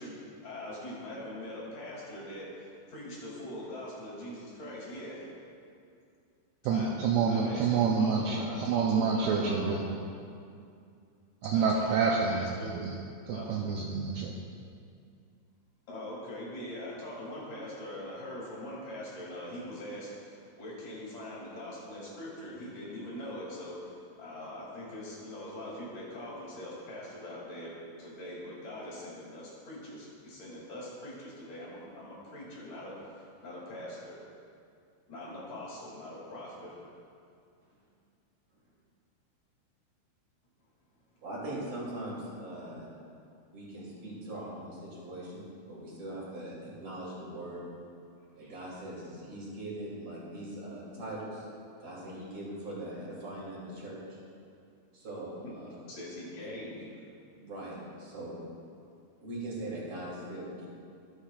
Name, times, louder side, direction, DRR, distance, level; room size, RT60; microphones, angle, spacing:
voice 1, 0.0-5.3 6.7-6.9 7.3-9.9 11.5-12.7 13.3-13.5 15.9-34.2 35.1-36.8 55.4-55.5 55.8-56.9, left 1 dB, 45° left, -7 dB, 3.9 m, -42 dB
voice 2, 6.6-9.9 11.4-12.9 13.3-14.4, right 5 dB, 85° right, -1 dB, 2.4 m, -28 dB
voice 3, 41.2-42.9 43.5-47.6 48.3-51.5 51.8-54.0 54.9-55.9 56.4-56.5 57.4-58.4 59.2-60.6, right 1 dB, 35° right, -7 dB, 3.2 m, -41 dB
18.0 x 7.3 x 2.4 m, 2.4 s
omnidirectional pair, 5.4 m